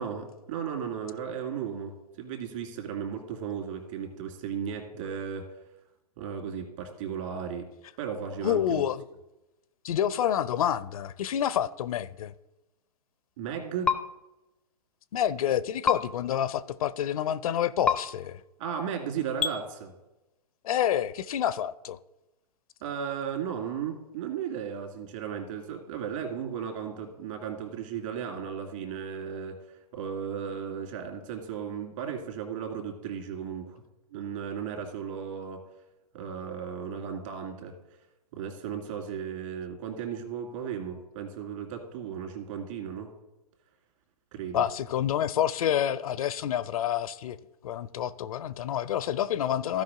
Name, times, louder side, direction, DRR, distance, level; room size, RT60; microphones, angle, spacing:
voice 1, 0.0-5.4 6.2-7.7 8.0-8.8 13.4-14.0 18.6-19.9 22.8-29.5 29.9-33.8 34.1-35.6 36.1-37.7 38.3-43.1 44.3-44.6, right 7 dB, 50° right, 2.3 m, -35 dB
voice 2, 8.4-9.0 9.8-12.3 15.1-18.4 20.6-22.0 44.5-47.4 47.6-49.8, left 10 dB, 60° left, 0.5 m, -28 dB
sound 1, 13.8-14.0 15.8-16.0 17.8-18.0 19.4-19.5, left 6 dB, 5° left, 0.5 m, -24 dB
15.5 x 5.2 x 3.7 m
hypercardioid pair, 125°, 21 cm